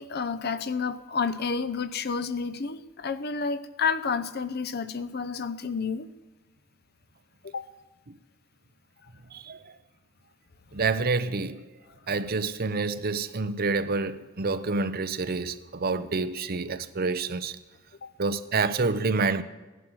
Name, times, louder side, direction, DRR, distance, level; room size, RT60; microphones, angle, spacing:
voice 1, 0.0-6.1 7.5-7.7 18.0-18.1, left 5 dB, 50° left, 0.7 m, -30 dB
voice 2, 10.7-11.6 12.1-17.6 18.2-19.4, right 4 dB, 45° right, 0.7 m, -28 dB
16.5 x 11.0 x 6.3 m
head